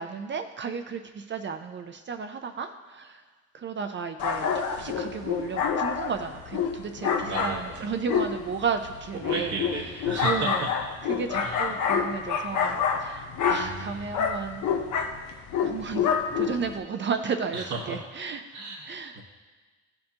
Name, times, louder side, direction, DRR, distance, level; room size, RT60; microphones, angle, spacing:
voice 1, 0.0-3.2 3.5-9.6 10.0-10.6 11.0-14.6 15.6-16.1 16.4-18.4 18.8-19.2, right 6 dB, 40° right, 7 dB, 0.5 m, -33 dB
sound 1, 4.2-16.8, left 6 dB, 70° left, 0.8 m, -28 dB
voice 2, 7.3-8.0 9.3-10.7 11.4-11.6 13.5-14.1 17.5-18.0 18.5-19.2, right 3 dB, 70° right, -5 dB, 1.3 m, -34 dB
13.0 x 4.5 x 2.8 m, 1.3 s
cardioid pair, 90°, 30 cm